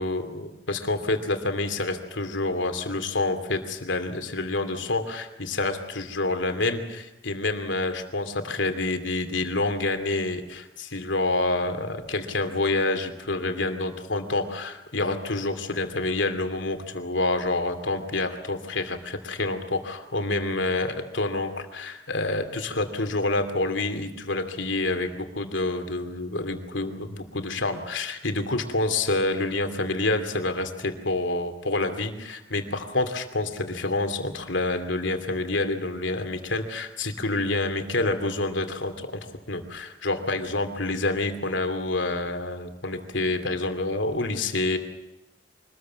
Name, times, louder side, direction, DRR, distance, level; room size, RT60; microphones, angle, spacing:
voice 1, 0.0-39.2 39.5-44.8, left 2 dB, 80° left, 7 dB, 2.8 m, -28 dB
24.5 x 20.0 x 7.6 m, 0.95 s
head